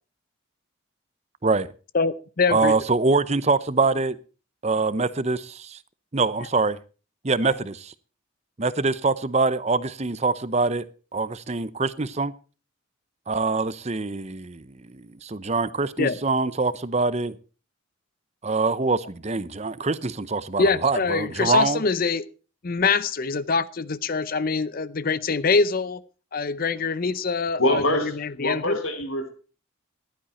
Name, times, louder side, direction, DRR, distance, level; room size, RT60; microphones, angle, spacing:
voice 1, 1.9-2.7 7.4-7.5 16.0-16.2 20.6-22.2 22.6-26.0 26.3-28.8, left 4 dB, 40° left, 0.6 m, -24 dB
voice 2, 2.5-4.2 4.6-5.8 6.1-6.8 7.2-7.9 8.6-10.9 11.1-12.3 13.3-17.4 18.4-21.8, right 3 dB, 30° right, 0.7 m, -24 dB
voice 3, 27.6-29.3, left 1 dB, 70° left, 3.0 m, -25 dB
15.0 x 11.5 x 4.3 m
head